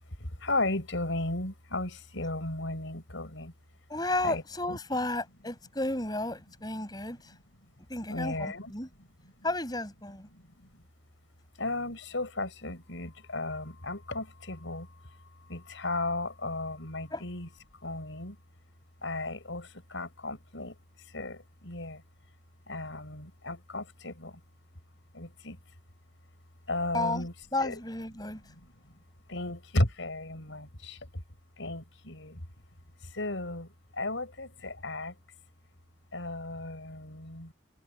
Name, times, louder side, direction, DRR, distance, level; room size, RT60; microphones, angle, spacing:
voice 1, 0.2-3.5 4.2-4.4 4.7-4.8 6.8-6.9 8.1-8.7 9.0-9.3 10.3-10.8 11.6-18.4 19.0-20.8 21.1-22.0 22.7-24.4 25.1-25.6 26.7-27.3 27.6-27.8 28.3-29.0 29.3-31.2 31.6-32.4 33.0-35.2 36.1-37.5, left 2 dB, 85° left, 5.2 m, -35 dB
voice 2, 3.9-7.3 7.9-8.9 9.4-10.3 17.1-17.2 26.9-27.3 27.5-28.4, left 2 dB, 20° left, 8.0 m, -33 dB
head